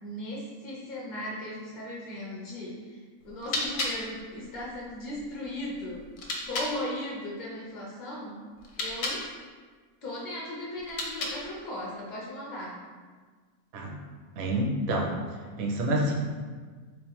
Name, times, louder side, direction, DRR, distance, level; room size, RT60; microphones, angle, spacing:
voice 1, 0.0-6.1 6.5-8.5 8.8-9.3 10.0-12.8, left 1 dB, 40° left, -4 dB, 0.8 m, -37 dB
sound 1, 3.2-6.8 8.6-9.3 10.8-11.6, left 2 dB, 70° left, 1.0 m, -35 dB
voice 2, 14.4-15.2 15.6-16.1, right 1 dB, 60° right, 0 dB, 0.7 m, -27 dB
3.6 x 3.1 x 3.0 m, 1.5 s
omnidirectional pair, 1.5 m